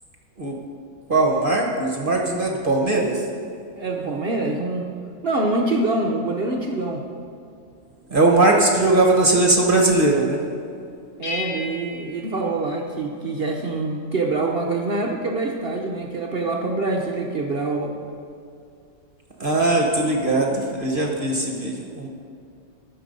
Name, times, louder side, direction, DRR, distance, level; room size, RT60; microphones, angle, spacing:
voice 1, 1.1-3.2 8.1-10.4 19.4-22.1, right 2 dB, 40° right, 0 dB, 0.9 m, -19 dB
voice 2, 3.8-4.9 5.2-7.1 11.2-17.9, right 2 dB, 65° right, 1 dB, 0.5 m, -25 dB
sound 1, 11.2-13.4, left 3 dB, 75° left, 2.5 m, -35 dB
13.0 x 6.8 x 5.3 m, 2.5 s
omnidirectional pair, 2.1 m